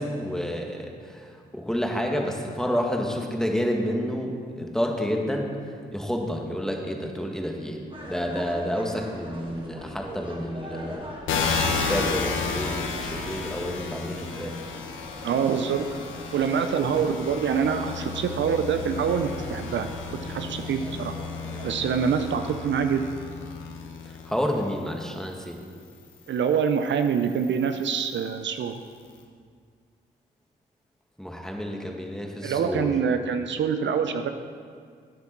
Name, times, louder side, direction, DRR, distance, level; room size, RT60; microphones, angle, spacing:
voice 1, 0.0-5.5 5.9-7.8 8.1-11.1 11.6-14.6 24.3-25.6 31.2-32.9, equal, 5° left, 1 dB, 2.0 m, -29 dB
sound 1, 7.9-21.8, equal, 25° right, 2.3 m, -42 dB
sound 2, 11.3-24.6 25.3-28.3, left 5 dB, 75° left, 1.2 m, -33 dB
voice 2, 15.2-15.9 16.3-19.9 20.2-21.1 21.6-23.0 26.3-28.8 32.4-34.3, right 7 dB, 65° right, 7 dB, 0.6 m, -25 dB
9.6 x 8.3 x 6.1 m, 2.1 s
supercardioid pair, 45°, 21 cm